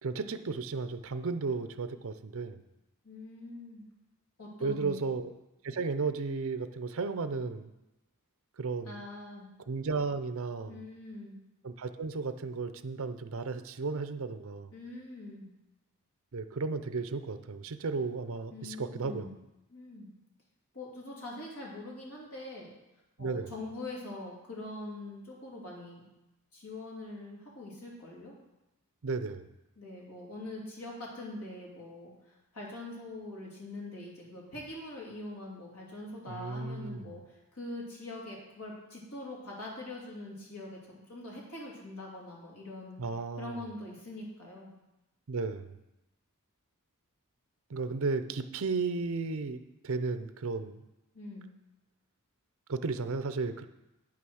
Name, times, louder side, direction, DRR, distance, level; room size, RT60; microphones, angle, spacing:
voice 1, 0.0-2.6 4.6-5.3 5.6-7.7 8.6-9.0 9.7-10.8 11.6-14.7 16.3-19.3 23.2-23.5 29.0-29.5 36.3-37.1 43.0-43.6 45.3-45.8 47.7-50.8 52.7-53.7, right 4 dB, 65° right, 10 dB, 0.6 m, -34 dB
voice 2, 3.0-3.9 4.4-5.0 8.8-9.5 10.7-11.4 14.7-15.5 18.5-19.4 19.7-20.1 20.7-22.7 23.2-26.0 26.5-28.4 29.8-43.0 43.4-44.7 51.1-51.5, left 2 dB, 80° left, -3 dB, 3.0 m, -43 dB
9.1 x 5.9 x 6.3 m, 0.96 s
head